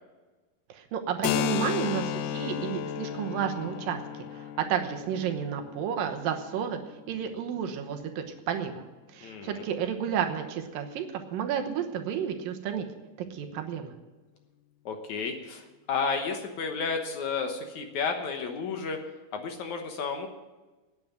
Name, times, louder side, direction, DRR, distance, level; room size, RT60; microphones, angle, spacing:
voice 1, 0.7-6.8 7.1-8.8 9.1-12.9 13.3-13.9, right 8 dB, 75° right, 5 dB, 2.7 m, -31 dB
Keyboard (musical), 1.2-8.6, left 10 dB, 80° left, 1.9 m, -34 dB
voice 2, 9.2-9.6 14.9-19.0 19.3-20.3, left 5 dB, 65° left, 5 dB, 2.2 m, -32 dB
11.0 x 9.6 x 9.1 m, 1.2 s
omnidirectional pair, 4.1 m